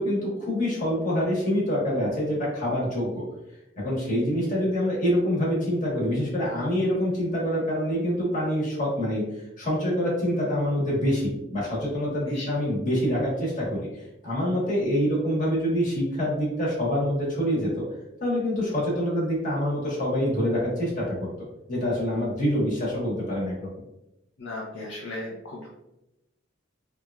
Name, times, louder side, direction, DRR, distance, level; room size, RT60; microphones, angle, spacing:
voice 1, 0.0-3.2 3.8-9.2 9.6-17.8 18.2-21.3 21.7-23.7, equal, 45° left, -5 dB, 1.1 m, -26 dB
voice 2, 24.4-25.7, left 2 dB, 80° left, -4 dB, 0.6 m, -36 dB
3.0 x 2.4 x 2.2 m, 0.92 s
head